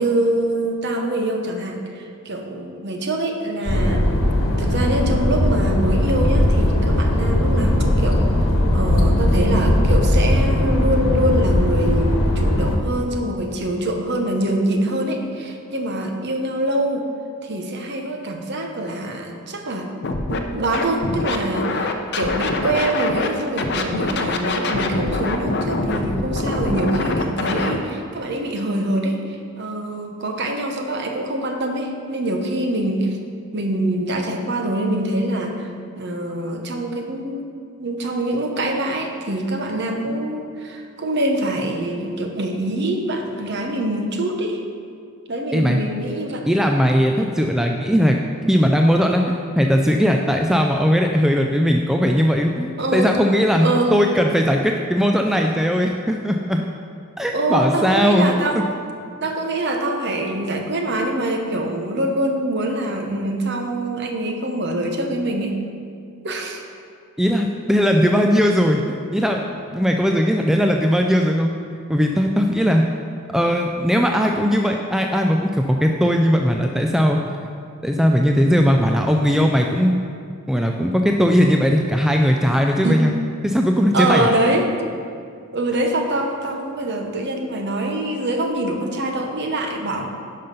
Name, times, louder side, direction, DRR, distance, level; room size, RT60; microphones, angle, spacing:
voice 1, 0.0-4.1 4.6-17.1 17.4-19.9 20.3-33.2 33.5-35.7 36.0-37.4 37.8-44.6 45.3-46.5 52.8-53.1 53.6-53.9 57.3-58.6 59.2-65.6 66.2-66.6 82.8-83.0 83.9-84.7 85.5-90.1, right 1 dB, 50° right, 3 dB, 1.0 m, -24 dB
sound 1, 3.6-12.8, left 1 dB, 70° left, 1.2 m, -18 dB
Scratching (performance technique), 20.0-20.4 20.7-23.3 23.6-27.8, left 3 dB, 50° left, 0.6 m, -24 dB
voice 2, 46.5-48.2 48.5-49.2 49.6-56.6 57.2-58.3 67.2-68.8 69.1-69.4 69.7-71.5 71.9-72.8 73.3-77.2 77.8-79.9 80.5-83.2 83.4-84.3, equal, ahead, 2 dB, 0.3 m, -18 dB
11.0 x 5.6 x 5.3 m, 2.3 s
head